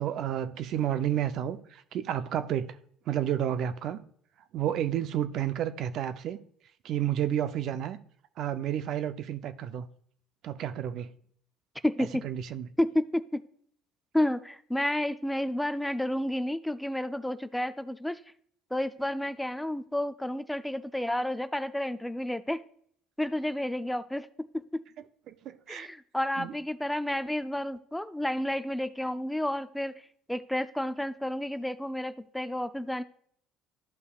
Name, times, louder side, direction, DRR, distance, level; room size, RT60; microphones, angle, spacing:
voice 1, 0.0-2.8 3.1-4.0 4.5-6.4 6.8-8.0 8.4-9.9 10.4-11.1 12.2-12.7 25.3-25.9 26.4-26.5, right 10 dB, 60° right, 0.6 m, -31 dB
voice 2, 11.8-12.2 12.8-13.4 14.1-18.2 18.7-22.6 23.2-24.8 25.7-30.0 30.3-33.0, left 1 dB, 5° left, 0.4 m, -31 dB
13.0 x 5.5 x 2.4 m
supercardioid pair, 85°, 0 cm